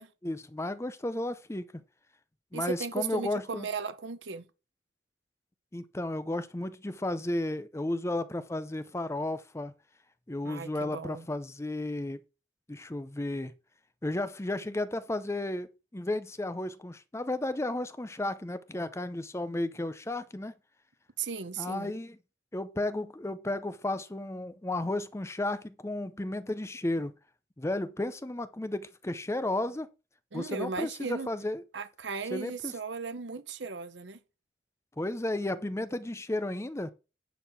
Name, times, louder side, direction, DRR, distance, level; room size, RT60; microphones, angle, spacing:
voice 1, 0.2-1.8 2.5-3.7 5.7-9.7 10.3-12.2 12.7-13.5 14.0-20.5 21.6-22.2 22.5-27.1 27.6-29.9 30.3-31.6 32.3-32.7 35.0-36.9, left 1 dB, 15° left, 0.6 m, -33 dB
voice 2, 2.5-4.4 10.4-11.3 21.2-21.9 30.3-31.3 31.7-34.2, right 5 dB, 70° right, 0.9 m, -36 dB
10.0 x 4.6 x 5.9 m
head